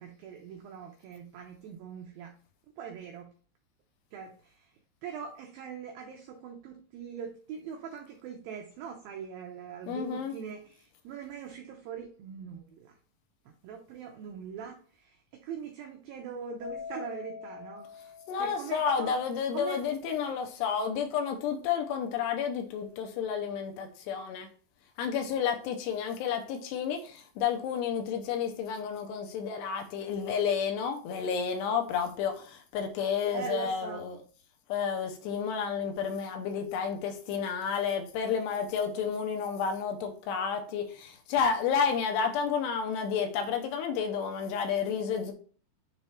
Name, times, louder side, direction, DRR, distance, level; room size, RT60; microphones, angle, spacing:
voice 1, 0.0-2.3 2.8-3.3 4.1-4.3 5.0-12.9 13.6-17.9 18.4-19.2 19.5-19.8 33.3-34.1, right 7 dB, 90° right, 2.0 m, -41 dB
voice 2, 9.9-10.3 18.3-24.5 25.0-34.2 34.7-45.3, left 7 dB, 80° left, 2.8 m, -31 dB
Keyboard (musical), 16.6-19.1, left 6 dB, 30° right, 1.3 m, -44 dB
7.1 x 3.5 x 4.3 m
omnidirectional pair, 5.2 m